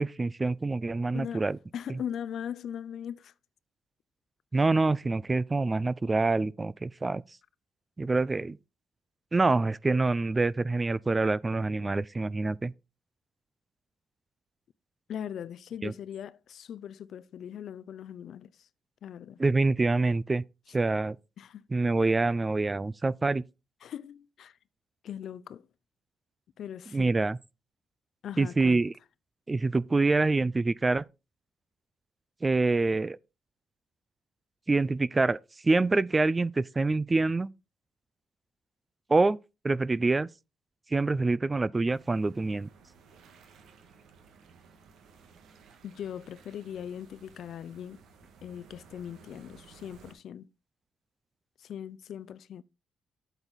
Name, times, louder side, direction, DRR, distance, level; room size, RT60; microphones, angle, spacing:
voice 1, 0.0-1.6 4.5-7.2 8.0-8.6 9.3-12.7 15.8-15.9 19.4-20.4 20.7-21.2 21.7-23.4 26.9-27.4 28.4-28.9 29.5-31.0 32.4-33.2 34.7-35.4 35.6-37.5 39.1-39.4 39.6-40.3 40.9-42.7, right 3 dB, 25° right, 0.3 m, -26 dB
voice 2, 1.1-1.4 1.7-3.3 15.1-18.7 19.0-19.4 21.4-21.7 23.8-24.6 25.0-25.7 26.6-27.1 28.2-28.8 45.8-48.0 48.4-50.5 51.6-52.6, left 9 dB, 65° left, 0.4 m, -40 dB
sound 1, 41.9-50.1, right 5 dB, 80° right, 1.5 m, -56 dB
8.0 x 7.2 x 4.0 m
cardioid pair, 95°, 0 cm